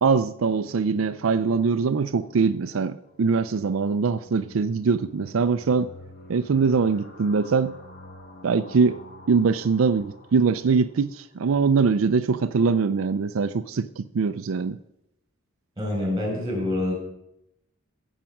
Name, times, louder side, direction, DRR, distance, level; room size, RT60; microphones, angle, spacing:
voice 1, 0.0-5.9 6.3-7.8 8.4-9.0 9.3-14.8, right 5 dB, 75° right, 11 dB, 0.4 m, -22 dB
sound 1, 0.6-11.4, equal, 50° left, 1.8 m, -49 dB
voice 2, 15.8-16.9, left 1 dB, 20° right, 1 dB, 5.4 m, -26 dB
16.0 x 7.3 x 5.9 m, 0.84 s
head